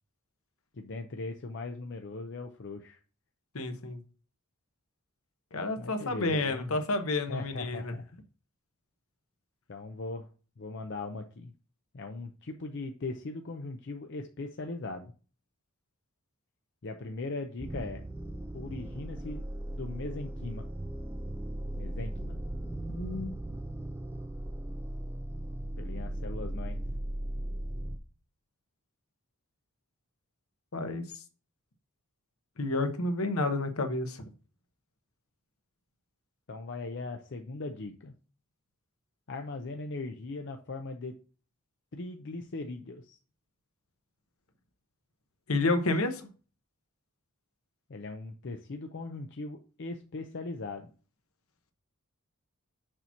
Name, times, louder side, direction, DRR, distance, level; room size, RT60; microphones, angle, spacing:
voice 1, 0.7-3.0 5.8-6.8 7.3-8.2 9.7-10.3 10.6-11.5 11.9-15.1 16.8-18.0 18.5-19.4 19.7-20.7 21.8-22.4 25.8-26.8 36.5-38.1 39.3-41.1 41.9-43.2 47.9-50.9, left 3 dB, 50° left, 0.5 m, -39 dB
voice 2, 3.5-4.0 5.5-7.9 22.9-23.3 30.7-31.0 32.6-34.2 45.5-46.3, left 2 dB, 70° left, 1.0 m, -30 dB
sound 1, 17.6-28.0, right 1 dB, 10° right, 0.4 m, -37 dB
6.7 x 2.9 x 5.6 m
head